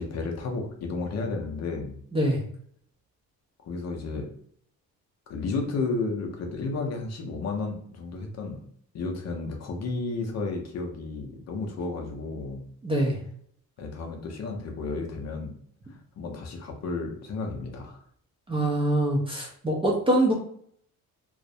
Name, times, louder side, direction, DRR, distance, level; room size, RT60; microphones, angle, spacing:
voice 1, 0.0-2.0 3.6-4.3 5.3-8.6 8.9-12.7 13.8-15.5 16.2-18.0, left 3 dB, 45° left, 2 dB, 0.5 m, -32 dB
voice 2, 12.8-13.2 18.5-20.3, right 1 dB, 15° right, -2 dB, 0.4 m, -24 dB
2.3 x 2.0 x 2.6 m, 0.62 s
cardioid pair, 125°, 36 cm